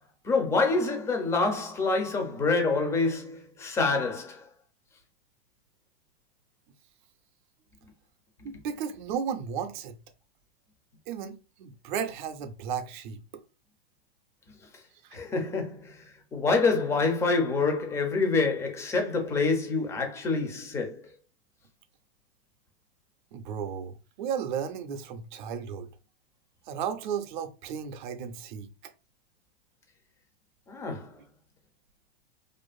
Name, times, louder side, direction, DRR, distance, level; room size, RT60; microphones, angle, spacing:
voice 1, 0.2-4.5 15.1-16.0 16.3-21.1 30.7-31.1, left 3 dB, 10° left, 0.4 m, -26 dB
voice 2, 8.4-10.0 11.1-13.2 15.0-15.2 23.3-25.9 26.7-28.9, right 7 dB, 55° right, 0.5 m, -34 dB
2.5 x 2.4 x 2.3 m
hypercardioid pair, 130°, 30 cm